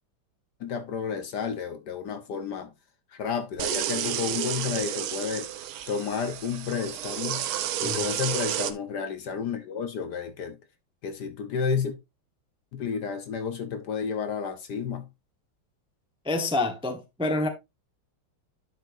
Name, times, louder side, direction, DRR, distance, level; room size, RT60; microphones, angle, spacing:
voice 1, 0.6-2.7 3.1-5.5 5.9-7.4 7.8-10.6 11.0-12.0 12.7-15.1, left 6 dB, 60° left, 1.3 m, -31 dB
sound 1, 3.6-8.7, right 11 dB, 80° right, 1.6 m, -31 dB
voice 2, 16.2-17.5, left 2 dB, 5° right, 0.8 m, -27 dB
10.5 x 6.3 x 2.6 m
omnidirectional pair, 2.3 m